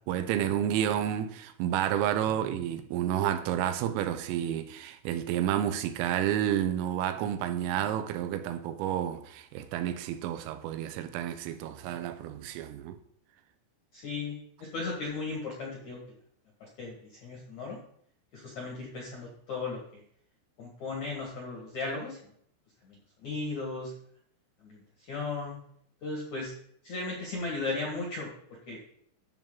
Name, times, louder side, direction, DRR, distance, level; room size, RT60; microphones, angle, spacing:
voice 1, 0.1-13.0, right 10 dB, 85° right, 3.3 m, -30 dB
voice 2, 13.9-16.0 16.8-17.8 18.3-20.0 20.6-22.2 22.9-23.9 24.6-24.8 25.1-25.6 26.0-26.5 26.8-28.3 28.7-28.9, left 3 dB, 65° left, 1.9 m, -36 dB
12.0 x 7.2 x 3.8 m
omnidirectional pair, 5.9 m